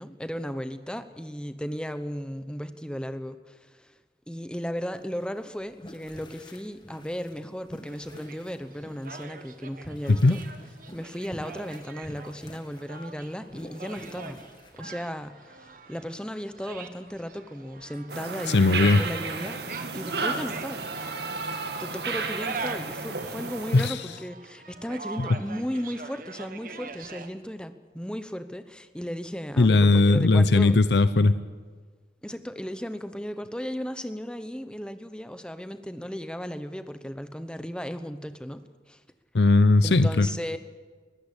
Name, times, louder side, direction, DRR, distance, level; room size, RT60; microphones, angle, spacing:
voice 1, 0.0-3.9 4.3-10.4 10.9-14.4 14.8-19.6 19.9-20.8 21.8-30.8 32.2-39.0 39.8-40.6, equal, 5° left, 10 dB, 0.9 m, -35 dB
sound 1, 4.9-14.9, left 1 dB, 25° left, 1.9 m, -47 dB
sound 2, 7.8-27.3, right 4 dB, 50° right, 1.4 m, -43 dB
sound 3, 18.1-23.9, right 4 dB, 65° right, 1.9 m, -32 dB
voice 2, 18.5-19.0 23.7-24.0 25.3-25.4 29.6-31.3 39.3-40.3, left 3 dB, 75° left, 13 dB, 0.7 m, -18 dB
20.5 x 15.0 x 9.9 m, 1.5 s
head